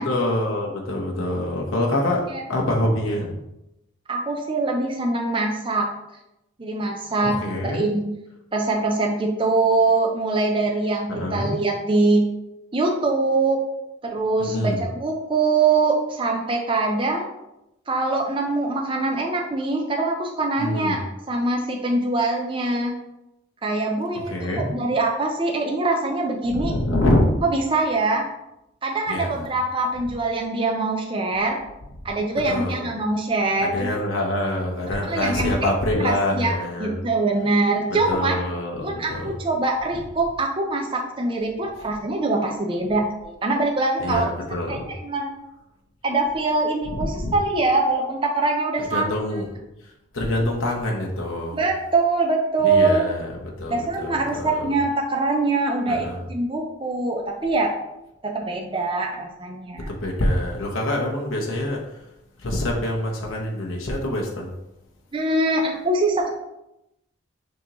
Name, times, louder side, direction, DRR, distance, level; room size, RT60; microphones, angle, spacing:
voice 1, 0.0-3.3 7.2-7.9 11.1-11.5 14.4-14.8 20.6-21.0 24.3-24.7 26.5-27.4 29.1-29.4 32.5-32.9 33.6-37.0 38.1-39.3 44.0-44.9 47.0-47.3 48.9-49.5 50.1-51.6 52.6-54.6 55.9-56.2 59.9-62.0 62.4-64.5, left 1 dB, 85° left, -1 dB, 0.9 m, -25 dB
voice 2, 4.1-5.9 6.6-7.4 7.7-8.1 8.5-12.3 12.7-13.6 14.0-17.3 17.9-21.0 21.3-23.0 23.6-26.7 27.4-28.2 28.8-31.6 32.0-33.9 35.1-35.6 36.0-36.5 36.8-38.4 38.8-44.3 44.7-45.3 46.0-49.2 51.5-53.0 53.7-57.7 58.2-59.9 65.1-66.3, right 3 dB, 25° right, 1 dB, 0.5 m, -23 dB
6.3 x 2.9 x 2.9 m, 0.89 s
head